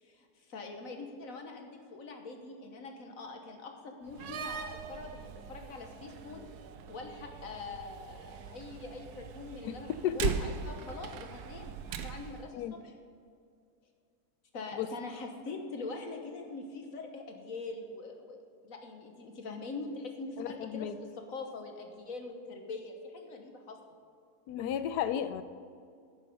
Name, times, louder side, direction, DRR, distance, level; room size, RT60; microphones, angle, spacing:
voice 1, 0.0-6.4 6.9-12.9 14.5-18.4 18.6-23.8, left 3 dB, 60° left, 4 dB, 1.4 m, -43 dB
Slam, 4.1-12.5, right 7 dB, 75° right, 1.2 m, -40 dB
voice 2, 10.0-10.4 12.5-12.7 14.8-14.9 20.4-21.0 24.5-25.4, left 9 dB, 80° left, 12 dB, 1.2 m, -33 dB
11.0 x 8.8 x 5.4 m, 2.3 s
omnidirectional pair, 1.7 m